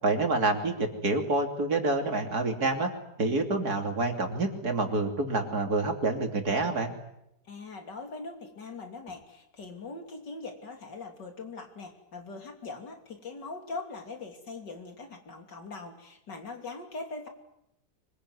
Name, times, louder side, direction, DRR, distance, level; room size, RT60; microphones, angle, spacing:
voice 1, 0.0-2.9 3.2-6.9, right 2 dB, 65° right, 4 dB, 3.4 m, -27 dB
voice 2, 7.5-17.3, left 3 dB, 90° left, 4 dB, 3.7 m, -41 dB
24.5 x 21.5 x 9.6 m, 0.83 s
omnidirectional pair, 1.8 m